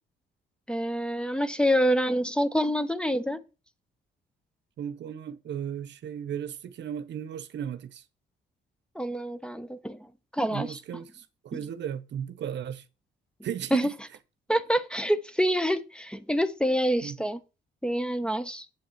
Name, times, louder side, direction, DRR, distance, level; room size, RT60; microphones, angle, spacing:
voice 1, 0.7-3.4 9.0-10.0 10.3-10.7 13.7-13.9 14.5-17.4 17.8-18.7, equal, 5° left, 0.8 m, -26 dB
voice 2, 4.8-8.0 10.5-12.9 13.4-13.9 17.0-17.2, right 9 dB, 65° right, 0.8 m, -35 dB
7.8 x 7.7 x 4.5 m
cardioid pair, 90°, 20 cm